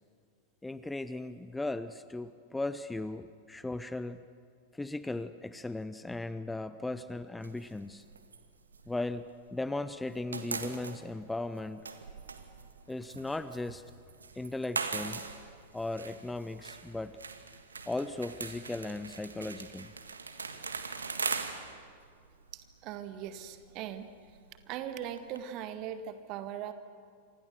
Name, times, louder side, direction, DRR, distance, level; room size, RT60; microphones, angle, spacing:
voice 1, 0.6-4.2 4.7-8.1 8.9-11.8 12.9-13.8 14.3-15.3 15.7-17.2 17.9-19.9, left 2 dB, 5° left, 13 dB, 0.7 m, -37 dB
sound 1, 7.4-9.7 9.9-25.4, right 5 dB, 75° right, 1.7 m, -41 dB
voice 2, 22.5-24.1 24.7-26.7, right 10 dB, 40° right, 9 dB, 1.9 m, -40 dB
29.0 x 26.0 x 6.7 m, 2.2 s
figure-of-eight pair, 90°, 0 cm